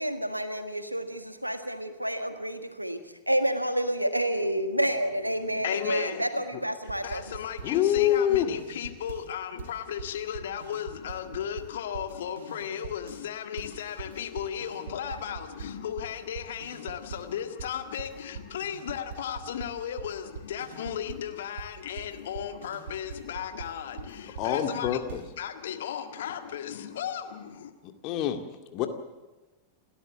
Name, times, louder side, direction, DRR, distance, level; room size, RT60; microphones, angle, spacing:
voice 1, 0.0-7.3 14.9-15.2, right 1 dB, 90° right, 1.6 m, -29 dB
voice 2, 5.4-6.4 7.0-25.0 25.4-27.7, left 9 dB, 60° left, 1.8 m, -35 dB
sound 1, 6.8-9.3 9.6-13.3 13.6-17.3 17.6-25.4, right 6 dB, 65° right, 2.2 m, -43 dB
voice 3, 7.6-8.5 24.4-25.2 27.8-28.4 28.7-28.9, left 11 dB, 40° left, 2.2 m, -25 dB
28.5 x 13.0 x 7.4 m
figure-of-eight pair, 90°, 0 cm